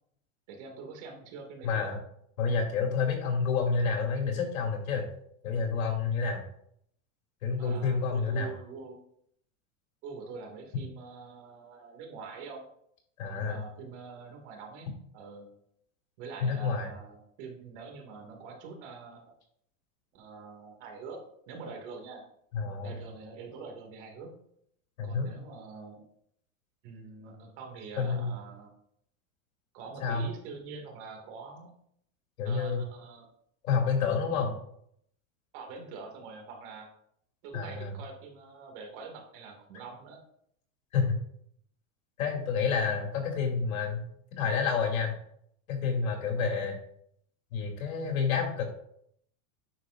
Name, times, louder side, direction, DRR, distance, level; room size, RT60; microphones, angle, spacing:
voice 1, 0.5-1.9 7.6-9.0 10.0-12.7 13.3-14.9 15.1-15.5 16.2-19.3 20.1-21.2 21.5-22.2 22.8-24.3 25.0-26.0 26.8-28.7 29.7-31.7 32.4-33.3 34.3-34.6 35.5-36.9 37.4-40.2, right 4 dB, 55° right, 2 dB, 2.5 m, -45 dB
voice 2, 1.6-2.0 2.4-5.0 5.4-6.4 7.4-8.5 13.2-13.6 16.4-16.9 22.5-23.0 25.0-25.3 28.0-28.3 30.0-30.3 32.4-32.8 33.6-34.5 37.5-37.9 40.9-41.2 42.2-44.0 44.4-45.1 45.7-46.8 47.5-48.7, left 5 dB, 85° left, 1 dB, 2.9 m, -29 dB
9.3 x 6.7 x 2.6 m, 0.69 s
supercardioid pair, 150°, 41 cm